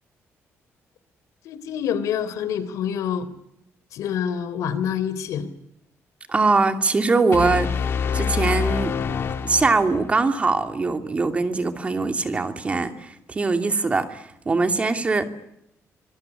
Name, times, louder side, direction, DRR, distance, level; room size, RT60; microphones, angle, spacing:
voice 1, 1.4-3.3 3.9-5.5, left 8 dB, 90° left, 3.4 m, -26 dB
voice 2, 6.3-7.7 8.1-15.3, right 3 dB, 25° right, 2.7 m, -22 dB
sound 1, 7.3-10.2, left 6 dB, 50° left, 1.9 m, -26 dB
26.0 x 22.0 x 9.8 m
cardioid pair, 145°, 5 cm